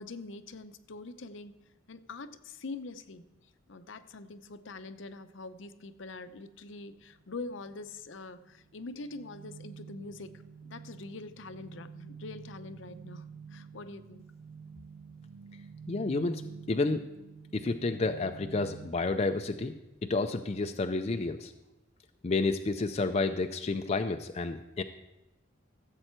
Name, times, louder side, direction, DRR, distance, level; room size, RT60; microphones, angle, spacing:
voice 1, 0.0-1.5 1.9-3.3 3.7-14.3, left 3 dB, 70° left, 10 dB, 0.7 m, -44 dB
sound 1, 7.1-7.3 7.6-18.9, right 6 dB, 85° right, 0.4 m, -48 dB
voice 2, 15.9-16.4 16.7-17.0 17.5-19.8 20.0-21.5 22.2-24.8, left 3 dB, 30° left, 6 dB, 0.4 m, -30 dB
15.5 x 7.7 x 4.5 m, 0.97 s
head